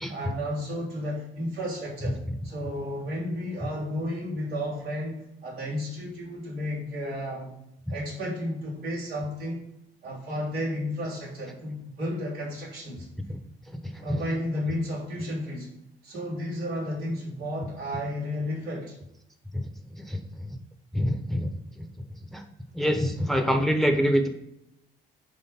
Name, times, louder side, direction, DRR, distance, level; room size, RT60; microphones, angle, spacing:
voice 1, 0.1-2.2 2.4-7.5 7.9-9.6 10.0-13.1 14.0-15.7 16.0-19.0, equal, 80° right, -8 dB, 3.3 m, -32 dB
voice 2, 20.9-21.5 22.3-22.4 22.7-24.3, equal, ahead, 6 dB, 1.0 m, -25 dB
9.9 x 3.7 x 5.5 m, 0.82 s
figure-of-eight pair, 45°, 29 cm